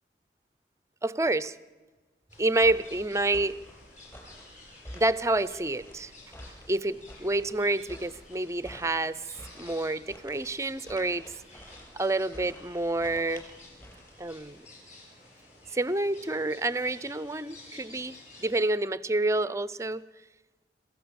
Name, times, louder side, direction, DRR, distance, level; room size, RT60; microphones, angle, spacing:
voice 1, 1.0-1.5 2.4-3.6 4.9-6.1 6.7-9.2 9.6-11.2 11.9-13.4 14.2-14.6 15.7-20.0, right 2 dB, 15° right, 17 dB, 0.6 m, -28 dB
sound 1, 2.3-18.6, left 2 dB, 45° left, 6.4 m, -53 dB
sound 2, 2.6-14.5, equal, 15° left, 5.1 m, -49 dB
27.0 x 15.0 x 7.0 m, 1.3 s
head